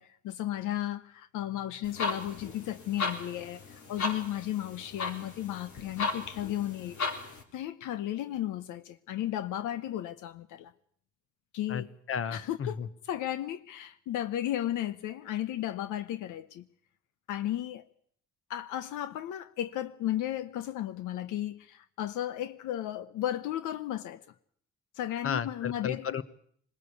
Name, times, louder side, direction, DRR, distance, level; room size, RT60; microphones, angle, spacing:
voice 1, 0.0-7.0 7.5-10.7 11.5-11.9 12.3-12.8 13.0-16.6 17.3-17.9 18.5-24.2 25.0-26.1, left 12 dB, 85° left, 0.9 m, -34 dB
sound 1, 1.8-7.4, left 3 dB, 70° left, 4.2 m, -36 dB
voice 2, 11.7-12.9 25.2-26.2, left 7 dB, 50° left, 1.3 m, -33 dB
21.0 x 19.0 x 8.3 m
cardioid pair, 90°, 30 cm